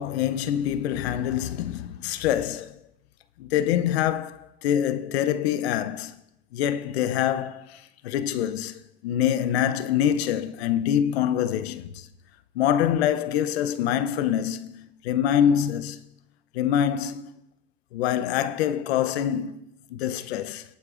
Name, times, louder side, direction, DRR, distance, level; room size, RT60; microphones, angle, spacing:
voice 1, 0.0-2.8 3.4-6.1 6.5-12.1 12.6-16.0 16.5-17.3 17.9-20.6, left 10 dB, 85° left, 0.6 m, -25 dB
20.5 x 8.7 x 2.5 m
hypercardioid pair, 75°, 30 cm